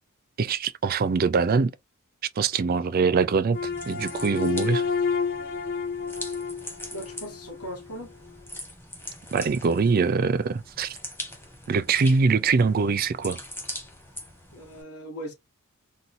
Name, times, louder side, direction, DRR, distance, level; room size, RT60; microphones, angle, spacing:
voice 1, 0.4-1.7 2.4-3.6 3.9-4.9 9.3-11.0 11.7-13.4, right 4 dB, 40° right, 0.4 m, -23 dB
sound 1, 3.5-7.8, left 5 dB, 40° left, 0.4 m, -30 dB
sound 2, 3.5-14.8, left 1 dB, 10° left, 0.9 m, -42 dB
voice 2, 6.9-8.1 14.5-15.3, equal, 80° left, 1.3 m, -38 dB
4.0 x 2.2 x 2.5 m
head